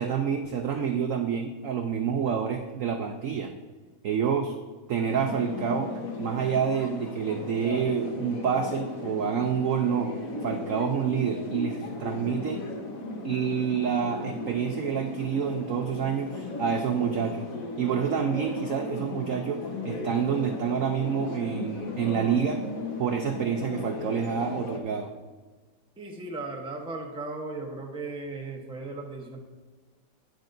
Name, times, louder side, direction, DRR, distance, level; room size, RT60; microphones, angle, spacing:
voice 1, 0.0-3.5 4.0-4.6 4.9-5.9 6.2-10.1 10.4-12.6 13.2-17.5 17.8-22.6 23.0-25.1, right 7 dB, 75° right, 5 dB, 0.7 m, -28 dB
sound 1, 5.0-24.8, left 3 dB, 50° left, 1.4 m, -36 dB
voice 2, 26.0-29.4, right 3 dB, 5° right, 0 dB, 0.6 m, -36 dB
12.0 x 9.3 x 2.6 m, 1.3 s
omnidirectional pair, 2.1 m